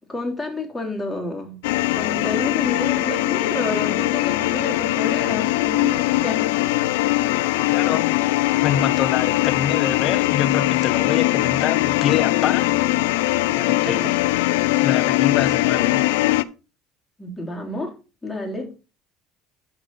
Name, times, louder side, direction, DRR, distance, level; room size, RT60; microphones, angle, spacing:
voice 1, 0.1-1.6 2.0-6.5 13.7-14.2 17.2-18.0 18.2-18.7, left 2 dB, 15° left, 3.6 m, -29 dB
sound 1, 1.6-16.4, left 18 dB, 85° left, 0.5 m, -21 dB
voice 2, 7.7-8.1 8.6-12.8 13.5-14.1 14.8-16.1, left 9 dB, 55° left, 1.0 m, -25 dB
11.5 x 4.9 x 4.2 m
supercardioid pair, 90°, 0 cm